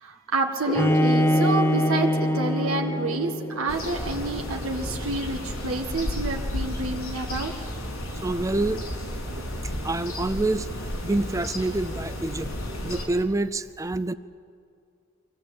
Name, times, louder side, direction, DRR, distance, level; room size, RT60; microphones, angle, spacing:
voice 1, 0.0-7.5 9.3-9.4, right 2 dB, 85° right, 2 dB, 1.7 m, -29 dB
sound 1, 0.6-7.8, equal, 40° left, 1.6 m, -34 dB
Bowed string instrument, 0.7-3.7, equal, 10° left, 1.0 m, -23 dB
sound 2, 3.7-13.1, left 1 dB, 85° left, 5.1 m, -33 dB
voice 2, 8.2-8.8 9.8-10.7 11.0-12.5 12.8-14.1, right 2 dB, 15° right, 13 dB, 0.5 m, -26 dB
23.5 x 17.0 x 8.7 m, 2.3 s
head